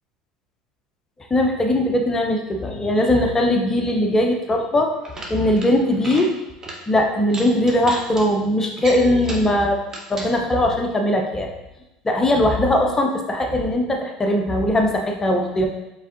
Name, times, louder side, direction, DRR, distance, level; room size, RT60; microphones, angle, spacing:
voice 1, 1.3-4.9 5.3-6.3 6.9-9.8 10.1-11.5 12.0-15.7, left 1 dB, 20° left, 3 dB, 0.7 m, -20 dB
sound 1, 4.9-5.7 6.0-6.3 6.6-6.8 7.3-8.2 8.8-9.5 9.9-10.3, right 2 dB, 25° right, 1.0 m, -34 dB
4.7 x 3.5 x 2.8 m, 0.94 s
hypercardioid pair, 80°, 2 cm